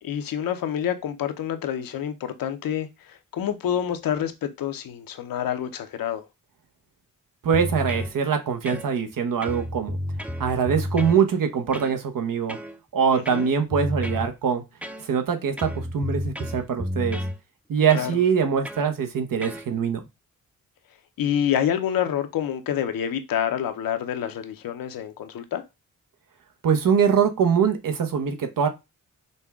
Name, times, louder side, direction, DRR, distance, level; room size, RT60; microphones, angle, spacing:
voice 1, 0.0-6.3 13.1-13.5 17.9-18.1 21.2-25.6, left 9 dB, 85° left, 0.7 m, -27 dB
voice 2, 7.4-10.0 10.4-12.6 12.9-14.6 15.0-17.2 17.7-20.0 26.6-28.7, right 7 dB, 75° right, 0.9 m, -23 dB
sound 1, 7.5-8.1 8.7-9.1 9.4-11.2 11.7-12.0 12.5-12.8 13.3-14.3 14.8-15.3 15.6-17.4 17.9-18.1 18.7-18.9 19.4-19.7, left 1 dB, 5° right, 0.5 m, -31 dB
5.3 x 2.2 x 3.5 m
cardioid pair, 70°, 33 cm